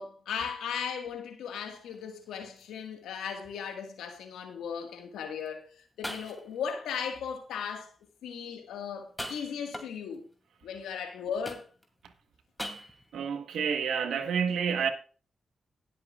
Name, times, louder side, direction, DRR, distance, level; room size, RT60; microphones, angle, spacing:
voice 1, 0.0-5.7 6.0-7.9 8.2-10.2 10.6-11.6, left 7 dB, 85° left, 1.7 m, -37 dB
sound 1, 1.7-2.0 2.6-2.7 3.4-3.5 5.5-5.6 6.0-6.7 9.0-10.2 11.4-12.0 12.6-13.2, equal, 10° left, 2.7 m, -40 dB
voice 2, 13.1-14.9, right 7 dB, 80° right, 1.2 m, -29 dB
19.0 x 7.6 x 2.4 m
supercardioid pair, 40°, 0 cm